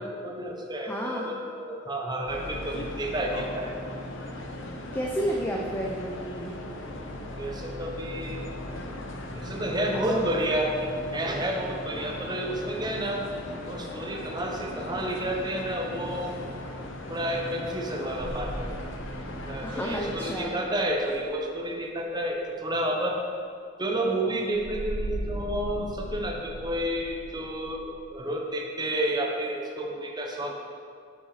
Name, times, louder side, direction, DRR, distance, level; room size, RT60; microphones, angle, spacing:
voice 1, 0.0-3.7 7.4-8.4 8.8-8.9 9.4-10.7 11.1-13.2 13.6-16.3 17.1-18.7 19.5-23.2 23.8-30.5, right 1 dB, 20° right, 0 dB, 0.9 m, -30 dB
voice 2, 0.8-1.3 4.9-6.5 10.0-10.2 19.6-20.5, equal, 10° left, -2 dB, 0.6 m, -31 dB
sound 1, 2.3-20.4, left 1 dB, 70° left, 0.8 m, -38 dB
sound 2, 18.2-21.8 24.5-27.8, right 1 dB, 65° right, 0.7 m, -38 dB
7.3 x 6.0 x 4.9 m, 2.2 s
head